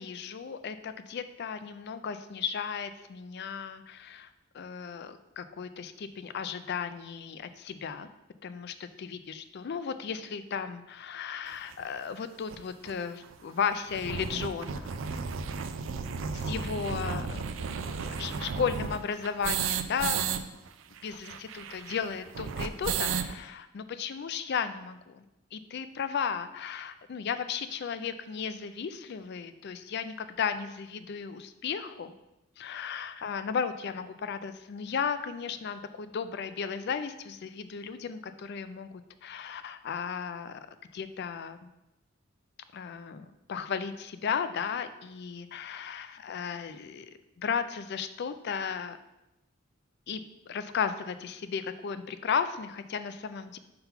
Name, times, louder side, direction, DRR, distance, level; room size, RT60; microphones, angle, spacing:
voice 1, 0.0-8.1 8.4-15.0 16.3-17.4 17.8-20.4 21.0-25.2 25.5-32.1 32.6-38.9 39.2-40.6 40.9-41.6 42.7-47.1 47.4-49.0 50.1-53.6, left 6 dB, 55° left, 11 dB, 0.4 m, -35 dB
sound 1, 11.7-11.8 12.5-12.6 12.8-12.9 13.2-13.3 13.7-20.4 20.7-20.8 21.0-23.3, right 6 dB, 65° right, 0.4 m, -33 dB
5.7 x 3.9 x 5.6 m, 0.92 s
head